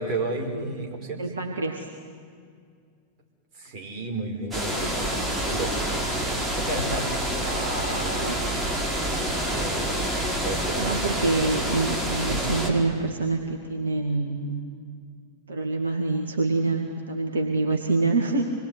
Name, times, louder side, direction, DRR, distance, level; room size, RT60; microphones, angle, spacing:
voice 1, 0.0-1.2 3.6-5.2 5.4-7.4 7.7-8.1 9.5-10.2 10.4-10.9 12.3-12.5, right 2 dB, 40° right, 2 dB, 5.4 m, -33 dB
voice 2, 1.2-1.9 7.4-8.4 10.8-14.5 15.5-18.5, right 3 dB, 70° right, 1 dB, 2.3 m, -26 dB
sound 1, 4.5-12.7, right 1 dB, 15° right, 5.2 m, -27 dB
26.5 x 21.5 x 9.9 m, 2.2 s
figure-of-eight pair, 90°, 0 cm